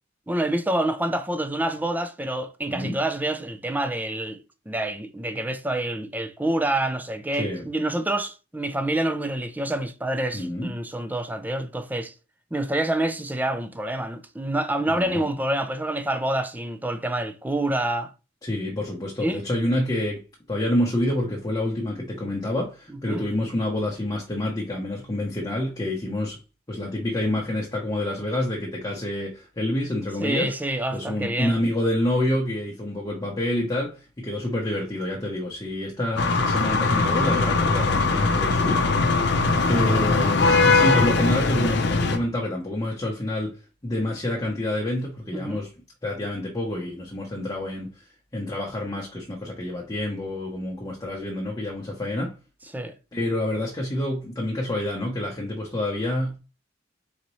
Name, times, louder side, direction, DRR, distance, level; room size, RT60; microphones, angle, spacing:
voice 1, 0.3-4.4 4.7-12.1 12.5-18.1 19.2-19.4 23.1-23.2 30.2-31.6 39.7-41.0 45.3-45.6 52.7-52.9, right 1 dB, 10° right, 0.5 m, -27 dB
voice 2, 2.7-3.0 7.4-7.6 10.3-10.7 14.9-15.3 18.4-26.4 26.7-30.5 30.9-38.9 39.7-45.7 46.0-52.4 53.1-56.4, left 1 dB, 20° left, 0.9 m, -28 dB
sound 1, 36.2-42.2, left 3 dB, 60° left, 0.7 m, -21 dB
4.2 x 4.0 x 3.1 m
head